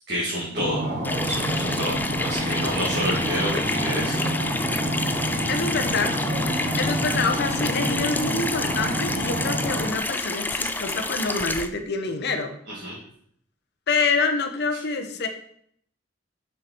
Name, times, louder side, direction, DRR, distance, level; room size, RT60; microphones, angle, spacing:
voice 1, 0.1-0.8 1.2-4.1 12.8-13.0, equal, 60° right, -7 dB, 2.1 m, -29 dB
sound 1, 0.6-9.9, right 1 dB, 40° right, 2.8 m, -28 dB
Water tap faucet / Sink (filling or washing), 1.0-11.7, left 2 dB, 10° left, 0.4 m, -29 dB
voice 2, 5.5-6.2 6.8-12.5 13.9-15.3, left 4 dB, 60° left, 6 dB, 0.8 m, -26 dB
6.4 x 5.6 x 4.5 m, 0.66 s
head